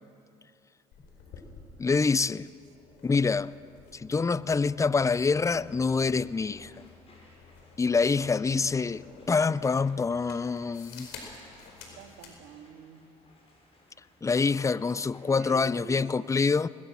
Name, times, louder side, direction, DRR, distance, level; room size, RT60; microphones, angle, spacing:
sound 1, 0.9-12.4, left 4 dB, 65° left, 4.8 m, -51 dB
voice 1, 1.8-2.5 3.0-3.5 3.9-6.7 7.8-11.1 14.2-16.7, left 4 dB, 15° left, 0.5 m, -26 dB
sound 2, 6.2-15.3, left 1 dB, 35° left, 6.4 m, -60 dB
voice 2, 12.0-13.1 15.2-16.3, right 7 dB, 65° right, 2.2 m, -46 dB
20.0 x 20.0 x 7.7 m
hypercardioid pair, 65°, 18 cm